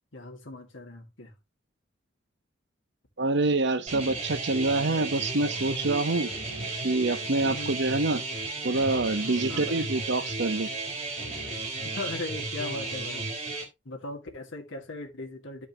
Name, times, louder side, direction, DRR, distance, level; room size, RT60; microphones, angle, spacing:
voice 1, 0.1-1.3 7.4-7.8 9.5-9.8 11.8-13.3 13.9-15.7, left 2 dB, 90° left, 2.0 m, -38 dB
voice 2, 3.2-6.3 6.8-8.2 8.6-10.7, right 2 dB, 65° right, 1.0 m, -26 dB
sound 1, 3.9-13.6, right 3 dB, 35° right, 3.6 m, -34 dB
12.0 x 5.2 x 2.9 m
head